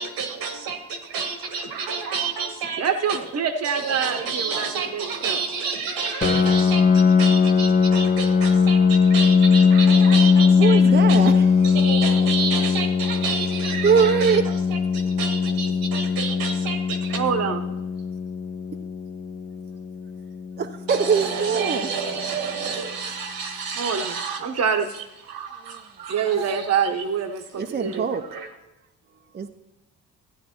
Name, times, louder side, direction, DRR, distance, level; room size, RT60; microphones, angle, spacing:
voice 1, 0.0-2.8 3.1-3.3 3.6-10.8 11.1-11.4 11.6-17.2 20.9-24.6 24.9-26.9 28.2-28.5, right 5 dB, 75° right, 6 dB, 1.4 m, -30 dB
voice 2, 2.8-5.4 17.1-17.6 23.8-24.9 26.1-28.1, right 6 dB, 45° right, 7 dB, 1.0 m, -26 dB
Piano, 6.2-21.6, left 5 dB, 25° left, 0.5 m, -20 dB
voice 3, 10.6-11.8 13.8-14.4 20.6-21.9 25.6-26.1 27.6-28.2 29.3-29.5, right 6 dB, 25° right, 5 dB, 0.6 m, -23 dB
12.5 x 9.4 x 3.0 m, 0.97 s
hypercardioid pair, 55°, 37 cm